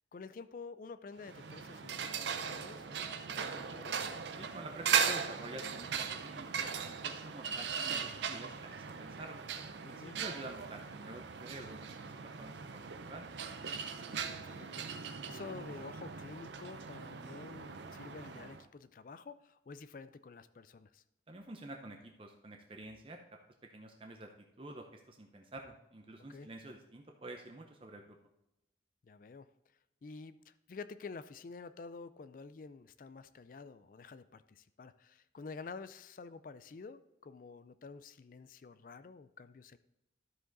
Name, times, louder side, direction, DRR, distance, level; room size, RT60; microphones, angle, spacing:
voice 1, 0.1-4.0 9.8-10.2 13.8-21.0 26.3-26.5 29.0-29.5 30.0-39.8, left 4 dB, 50° left, 13 dB, 0.4 m, -49 dB
sound 1, 1.2-18.6, right 6 dB, 75° right, 0.5 m, -39 dB
voice 2, 4.4-9.4 9.8-13.3 21.3-23.2 23.7-24.3 24.6-28.2, right 1 dB, 30° right, 3 dB, 0.7 m, -49 dB
12.5 x 5.0 x 4.0 m, 0.87 s
head